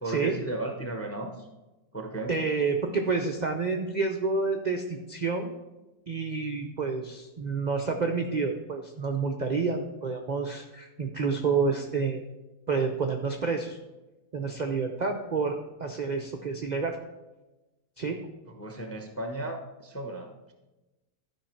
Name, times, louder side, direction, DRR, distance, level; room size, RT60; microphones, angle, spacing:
voice 1, 0.0-1.5 1.9-2.4 18.5-20.5, right 2 dB, 20° left, 4 dB, 0.4 m, -35 dB
voice 2, 2.3-5.5 6.1-12.2 12.7-13.8 14.3-17.0 18.0-18.2, right 4 dB, 65° right, 3 dB, 0.4 m, -29 dB
12.0 x 5.0 x 4.5 m, 1.0 s
omnidirectional pair, 1.7 m